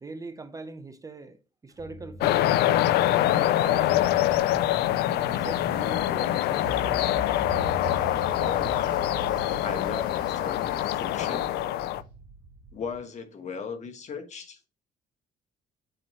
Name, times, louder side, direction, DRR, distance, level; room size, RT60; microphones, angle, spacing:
voice 1, 0.0-4.4 5.0-7.3, right 3 dB, 20° right, 0.7 m, -42 dB
sound 1, 1.7-13.0, right 2 dB, 60° right, 3.6 m, -41 dB
sound 2, 2.2-12.0, left 14 dB, 75° left, 0.5 m, -25 dB
Yell, 5.2-11.9, left 1 dB, 25° left, 3.4 m, -50 dB
voice 2, 8.4-9.3 9.6-11.5 12.7-14.6, left 5 dB, 45° left, 1.3 m, -37 dB
8.6 x 4.6 x 3.1 m
cardioid pair, 110°, 17 cm